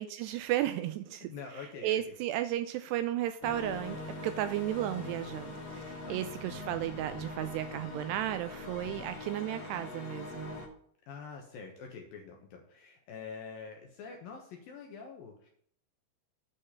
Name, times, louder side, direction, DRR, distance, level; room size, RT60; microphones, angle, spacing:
voice 1, 0.0-1.3 1.8-10.6, right 13 dB, 85° right, 10 dB, 2.4 m, -34 dB
voice 2, 1.2-2.1 6.0-6.4 8.8-9.1 11.1-15.5, left 5 dB, 70° left, 2 dB, 2.4 m, -46 dB
sound 1, 3.4-10.7, left 2 dB, 35° left, 2.3 m, -42 dB
8.4 x 5.5 x 7.1 m, 0.63 s
omnidirectional pair, 5.2 m